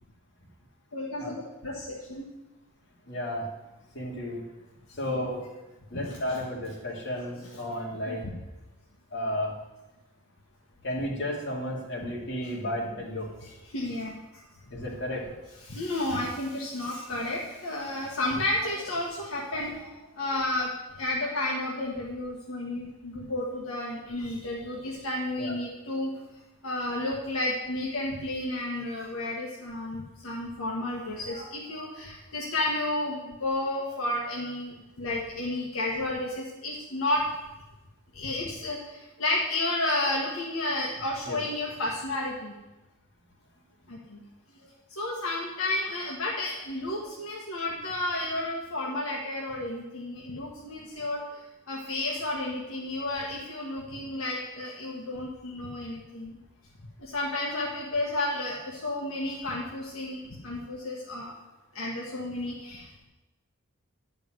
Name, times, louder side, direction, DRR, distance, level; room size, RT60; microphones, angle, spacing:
voice 1, 0.9-2.3 5.0-5.2 6.1-6.4 7.5-7.6 8.0-8.3 13.4-14.2 14.7-14.8 15.6-26.1 26.6-37.3 38.1-42.5 43.9-44.2 44.9-56.4 57.0-61.3 61.7-63.0, left 2 dB, 75° left, -3 dB, 1.5 m, -32 dB
voice 2, 3.1-3.5 3.9-4.4 5.0-5.4 5.9-8.2 9.1-9.5 10.8-13.3 14.7-15.3 25.4-25.5 41.3-41.4, left 1 dB, 55° left, -3 dB, 2.7 m, -32 dB
10.5 x 5.3 x 7.8 m, 1.0 s
head